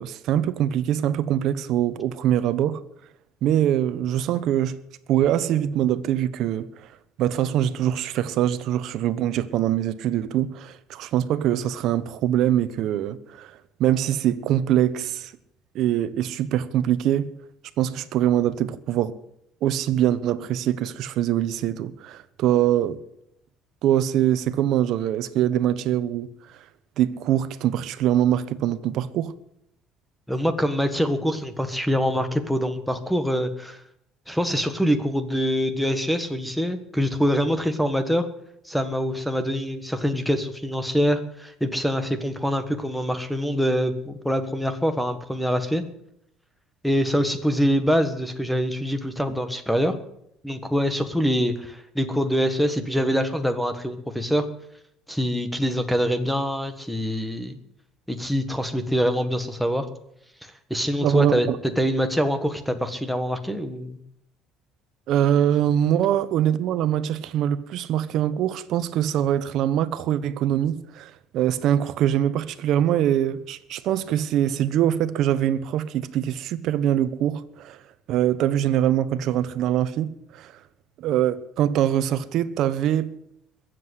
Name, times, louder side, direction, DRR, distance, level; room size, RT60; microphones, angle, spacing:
voice 1, 0.0-2.8 3.4-4.8 5.1-6.9 7.2-15.3 15.7-17.3 17.8-19.2 19.6-23.0 23.8-26.3 27.0-29.3 61.0-61.6 65.1-77.8 78.1-80.5 81.0-83.1, right 11 dB, 60° right, 1.0 m, -23 dB
voice 2, 30.3-33.8 34.3-38.2 38.6-45.8 46.8-49.9 50.4-54.4 55.1-57.6 58.1-59.9 60.7-61.5 61.8-64.0, equal, ahead, 1.4 m, -24 dB
21.5 x 7.8 x 8.2 m
cardioid pair, 145°, 0 cm